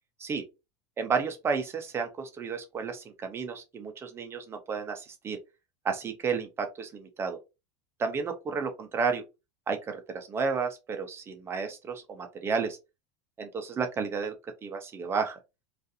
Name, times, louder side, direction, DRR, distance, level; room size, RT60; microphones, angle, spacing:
voice 1, 1.0-5.4 5.8-7.4 8.0-9.2 9.7-12.8 13.4-14.3 14.6-15.4, right 5 dB, 15° right, 0.4 m, -32 dB
2.4 x 2.4 x 2.6 m
supercardioid pair, 160°, 15 cm